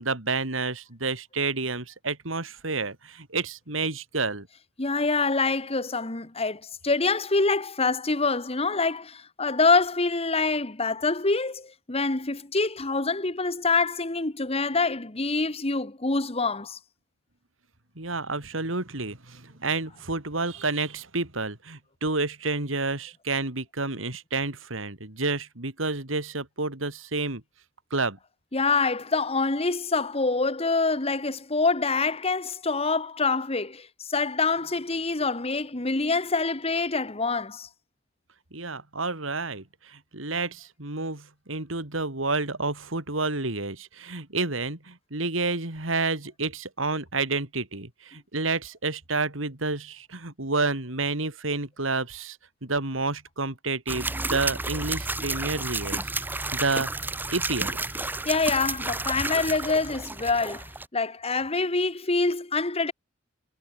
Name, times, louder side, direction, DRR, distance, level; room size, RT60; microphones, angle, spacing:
voice 1, 0.0-4.5 18.0-27.4 27.9-28.2 38.5-56.9 57.3-57.8, right 3 dB, 90° right, 3.6 m, -30 dB
voice 2, 4.8-16.8 28.5-37.7 58.2-60.6 60.9-62.9, left 3 dB, 30° left, 1.5 m, -25 dB
sound 1, 53.9-60.9, right 2 dB, 10° right, 0.8 m, -31 dB
head